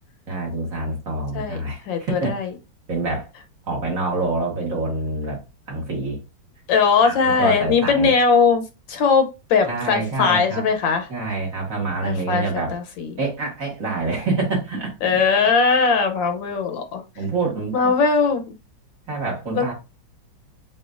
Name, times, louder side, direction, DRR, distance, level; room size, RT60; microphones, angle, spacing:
voice 1, 0.3-2.4 2.9-3.3 3.7-5.4 5.7-6.2 7.0-8.1 9.6-10.7 11.1-12.8 13.2-14.9 17.2-17.8 19.1-19.7, right 3 dB, 45° right, 1.9 m, -26 dB
voice 2, 1.9-2.5 6.7-8.6 8.9-11.1 12.0-12.4 12.7-13.1 15.0-17.0 17.7-18.4 19.5-19.7, left 5 dB, 70° left, 1.5 m, -19 dB
6.9 x 2.7 x 2.5 m
omnidirectional pair, 2.2 m